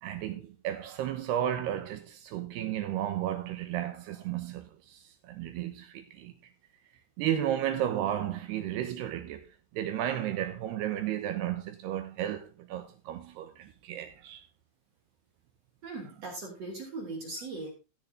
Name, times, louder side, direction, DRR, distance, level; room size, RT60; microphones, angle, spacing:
voice 1, 0.0-6.3 7.2-9.5 9.7-14.4, right 11 dB, 75° right, 2.6 m, -33 dB
voice 2, 15.8-17.7, right 3 dB, 35° right, 4.1 m, -39 dB
16.5 x 6.6 x 3.7 m
omnidirectional pair, 5.5 m